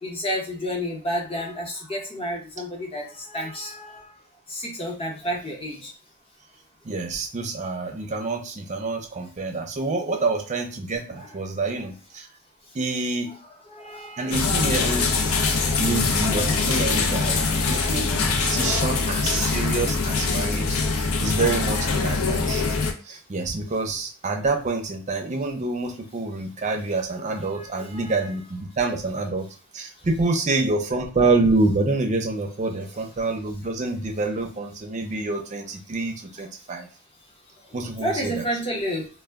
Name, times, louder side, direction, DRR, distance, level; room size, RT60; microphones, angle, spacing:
voice 1, 0.0-4.2 4.5-5.9 11.1-11.4 13.7-15.3 27.3-28.2 32.7-32.9 38.0-39.1, equal, 25° left, -1 dB, 0.8 m, -31 dB
voice 2, 6.8-12.3 12.7-13.3 14.2-15.2 15.8-22.6 23.1-29.5 29.7-36.9 37.7-38.5, right 3 dB, 35° right, 3 dB, 0.5 m, -27 dB
sound 1, 14.3-22.9, left 4 dB, 85° left, 0.5 m, -23 dB
2.2 x 2.2 x 3.4 m, 0.36 s
head